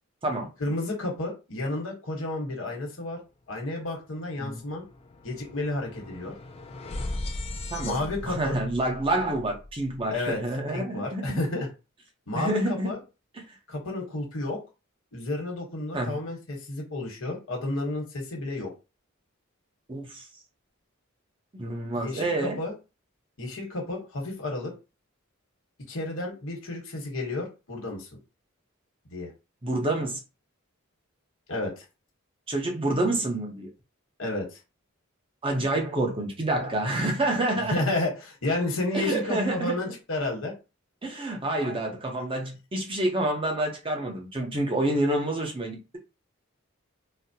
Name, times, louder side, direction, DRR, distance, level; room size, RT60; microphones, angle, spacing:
voice 1, 0.6-3.2 3.5-4.8 5.2-6.3 7.8-8.6 10.1-10.4 10.7-11.7 12.3-13.0 13.7-14.6 15.1-18.7 21.9-22.7 23.4-24.7 25.9-28.1 29.1-29.3 31.5-31.8 34.2-34.5 37.7-40.5, left 2 dB, 70° left, 1.2 m, -31 dB
sound 1, 4.2-10.4, left 2 dB, 30° left, 0.4 m, -39 dB
voice 2, 7.7-11.4 12.3-12.9 13.5-13.6 15.9-16.2 19.9-20.3 21.5-22.6 29.6-30.2 32.5-33.7 35.4-37.8 38.9-39.8 41.0-46.0, right 1 dB, 25° right, 0.7 m, -28 dB
4.1 x 2.0 x 2.7 m
head